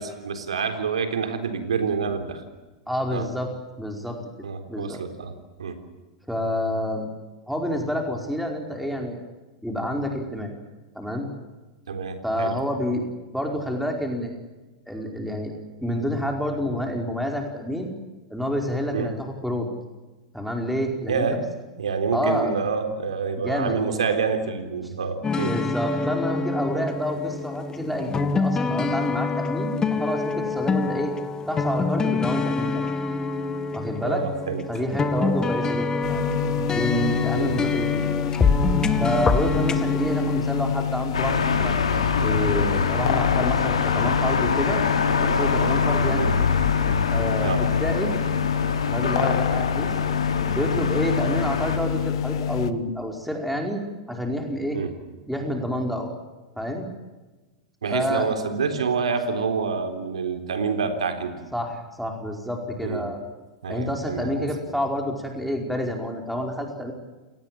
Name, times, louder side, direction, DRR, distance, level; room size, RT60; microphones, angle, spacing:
voice 1, 0.0-2.4 3.1-3.3 4.4-5.3 5.6-5.8 11.9-12.5 18.9-19.1 21.1-21.4 21.8-25.6 34.0-34.6 35.2-35.4 37.4-37.5 46.2-46.3 47.4-47.6 54.7-54.9 57.8-61.4 62.8-63.1 63.6-64.5, right 5 dB, 85° right, 8 dB, 3.8 m, -27 dB
voice 2, 2.9-3.5 3.8-4.2 4.7-5.0 6.3-7.1 7.5-9.2 9.6-10.5 10.9-11.3 12.2-14.3 14.9-15.5 15.8-17.9 18.3-19.7 20.3-21.3 22.1-22.5 23.4-24.1 25.4-31.1 31.5-32.9 33.7-34.2 34.7-36.2 36.7-38.1 39.0-41.8 42.2-44.8 45.2-46.3 47.1-48.2 48.9-49.9 50.5-53.8 54.1-54.8 55.3-56.1 56.6-56.9 57.9-58.3 61.5-63.2 63.7-66.9, equal, ahead, 2 dB, 4.9 m, -28 dB
sound 1, 25.2-40.4, left 4 dB, 20° left, 2.2 m, -26 dB
sound 2, 36.0-52.7, left 8 dB, 70° left, 1.3 m, -27 dB
sound 3, 41.1-51.8, left 5 dB, 90° left, 4.3 m, -25 dB
29.0 x 19.0 x 7.7 m, 1.2 s
hypercardioid pair, 100°, 3 cm